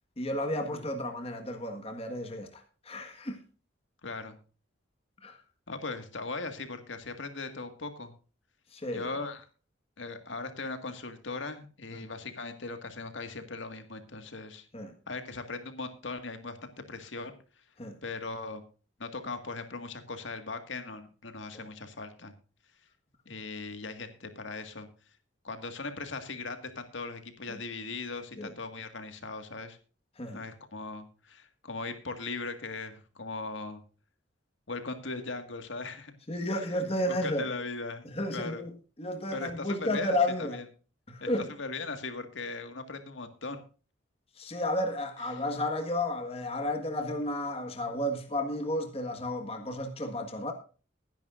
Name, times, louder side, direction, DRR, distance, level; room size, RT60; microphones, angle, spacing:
voice 1, 0.2-3.4 5.2-5.4 8.7-9.1 11.9-12.0 14.7-14.9 17.8-18.0 27.5-27.6 28.4-28.5 30.2-30.4 36.3-37.5 38.0-38.7 39.0-40.6 41.1-41.5 44.4-50.5, left 1 dB, 30° left, 1.6 m, -32 dB
voice 2, 4.0-4.4 5.7-8.1 8.9-9.5 10.0-14.7 15.1-17.3 18.0-18.6 19.0-22.3 23.3-24.9 25.4-29.8 30.3-33.8 34.7-36.1 37.0-38.6 39.3-40.6 41.2-41.3 41.6-43.6 45.3-45.4, left 3 dB, 75° left, 1.9 m, -39 dB
20.5 x 10.5 x 2.5 m
head